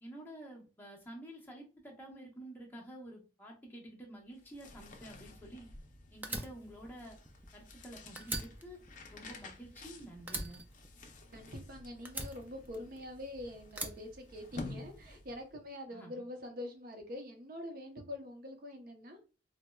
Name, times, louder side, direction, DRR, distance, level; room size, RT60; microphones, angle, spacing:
voice 1, 0.0-5.7 6.1-7.2 7.5-8.8 9.1-10.6 15.9-16.2, right 1 dB, 10° left, -2 dB, 0.8 m, -50 dB
sound 1, 4.3-15.5, left 2 dB, 45° left, 0.5 m, -52 dB
Fire, 6.2-7.9 8.2-9.9 10.3-11.6 12.1-13.2 13.7-14.9, right 1 dB, 10° right, 0.3 m, -42 dB
voice 2, 11.3-19.2, left 1 dB, 50° right, 4 dB, 0.7 m, -45 dB
4.2 x 2.1 x 2.2 m, 0.34 s
head